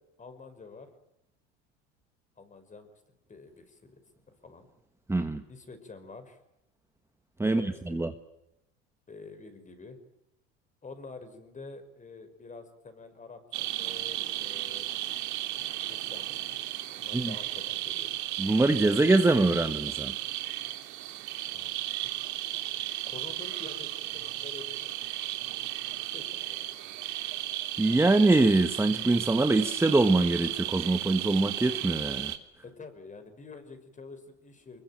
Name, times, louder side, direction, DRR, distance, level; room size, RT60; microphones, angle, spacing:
voice 1, 0.2-0.9 2.4-2.9 3.3-3.9 4.4-4.7 5.5-6.4 7.4-8.0 9.1-10.0 10.8-15.0 15.9-16.5 16.9-18.2 21.5-21.7 22.0-22.2 23.0-25.2 26.1-26.8 32.6-34.8, left 3 dB, 25° left, 9 dB, 5.8 m, -47 dB
voice 2, 5.1-5.4 7.4-8.1 17.1-17.3 18.4-20.1 27.8-32.3, right 2 dB, 10° right, 8 dB, 1.4 m, -24 dB
sound 1, 13.5-32.4, right 14 dB, 60° right, 2.8 m, -34 dB
25.0 x 22.0 x 9.1 m, 0.86 s
supercardioid pair, 95°, 33 cm